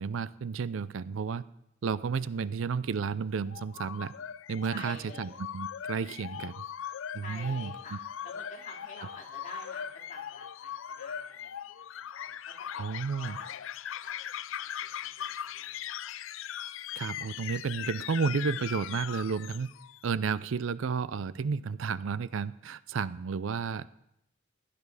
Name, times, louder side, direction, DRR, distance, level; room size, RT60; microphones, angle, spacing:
voice 1, 0.0-1.4 1.8-4.1 4.5-6.6 7.1-7.7 12.8-13.4 17.0-19.7 20.0-23.9, right 5 dB, 75° right, 17 dB, 0.4 m, -32 dB
sound 1, 3.5-20.0, left 9 dB, 75° left, 0.4 m, -40 dB
voice 2, 4.7-5.5 7.2-13.6 14.0-14.4 14.8-16.0, left 2 dB, 40° left, -2 dB, 3.1 m, -48 dB
16.0 x 11.5 x 4.8 m, 0.83 s
head